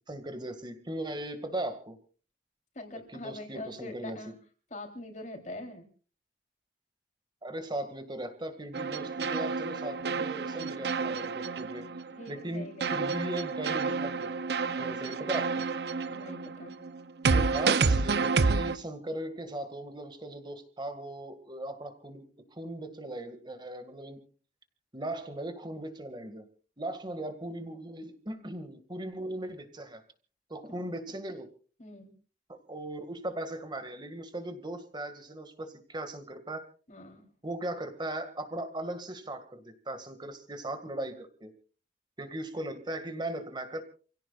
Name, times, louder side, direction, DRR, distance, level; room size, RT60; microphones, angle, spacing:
voice 1, 0.1-2.0 3.1-4.2 7.4-11.9 12.3-14.3 14.8-15.7 17.3-22.3 22.5-24.2 24.9-26.4 26.8-30.0 30.5-31.5 32.5-36.6 37.4-41.5 42.2-43.8, right 1 dB, 25° right, 8 dB, 2.0 m, -38 dB
voice 2, 2.8-4.4 4.7-5.9 12.1-13.1 16.1-16.8 31.8-32.1 36.9-37.3, left 2 dB, 45° left, 4 dB, 3.5 m, -43 dB
sound 1, 8.7-12.4 12.8-18.8, right 4 dB, 65° right, 0.7 m, -29 dB
29.0 x 16.5 x 2.5 m, 0.39 s
head